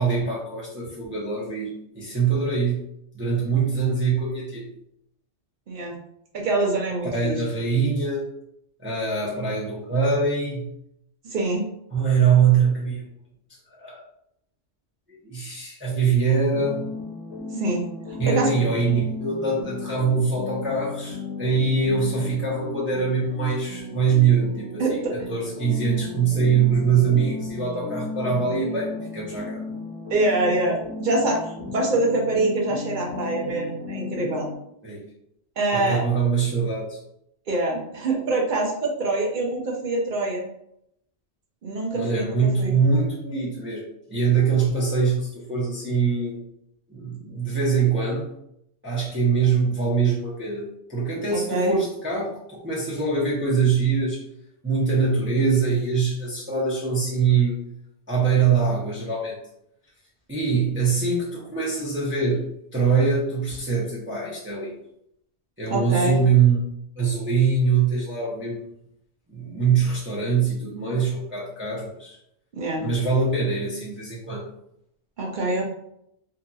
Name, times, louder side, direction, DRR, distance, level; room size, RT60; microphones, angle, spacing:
voice 1, 0.0-2.8 3.1-4.7 7.1-8.2 8.8-10.7 11.9-13.0 13.8-14.0 15.2-16.8 18.2-25.0 25.3-29.6 34.8-35.0 35.7-37.0 41.9-46.3 46.9-48.3 48.8-54.2 54.6-57.6 58.1-59.4 60.3-62.4 62.7-64.7 65.6-66.6 67.0-68.6 69.3-72.2 72.8-74.5, right 5 dB, 15° right, -6 dB, 0.5 m, -23 dB
voice 2, 6.3-7.4 11.3-11.6 17.5-17.8 18.1-18.5 24.8-25.1 30.1-31.4 31.7-34.5 35.6-36.0 37.5-40.5 41.6-42.8 51.3-51.7 65.7-66.2 72.5-72.8 75.2-75.7, right 2 dB, 55° right, 0 dB, 0.6 m, -25 dB
sound 1, 16.5-34.6, left 3 dB, 75° left, 0.9 m, -35 dB
2.7 x 2.6 x 2.3 m, 0.75 s
omnidirectional pair, 1.2 m